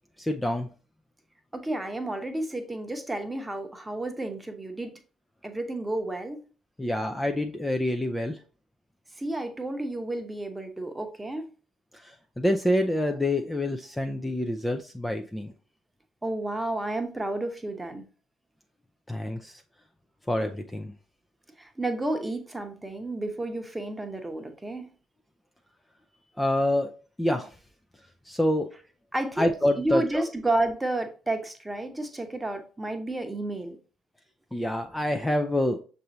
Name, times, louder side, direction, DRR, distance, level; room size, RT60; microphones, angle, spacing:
voice 1, 0.2-0.7 6.8-8.4 11.9-15.5 19.1-19.6 20.3-20.9 26.4-26.9 27.2-27.6 28.2-28.7 29.4-30.2 34.5-35.8, left 1 dB, 10° left, 5 dB, 0.5 m, -27 dB
voice 2, 1.5-5.0 5.4-6.4 9.1-11.5 16.2-18.1 21.6-24.9 29.1-33.8, right 2 dB, 15° right, 6 dB, 0.9 m, -31 dB
6.5 x 2.7 x 3.0 m, 0.37 s
hypercardioid pair, 50°, 0 cm